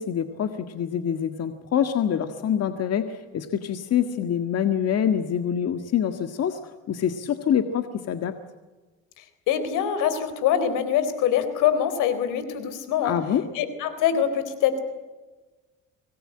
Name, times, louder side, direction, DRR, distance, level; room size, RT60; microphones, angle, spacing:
voice 1, 0.0-6.6 6.9-8.3 13.0-13.4, left 9 dB, 55° left, 8 dB, 1.8 m, -25 dB
voice 2, 9.2-13.1 13.5-14.8, left 9 dB, 85° left, 12 dB, 3.9 m, -24 dB
25.5 x 19.5 x 8.9 m, 1.2 s
cardioid pair, 100°, 30 cm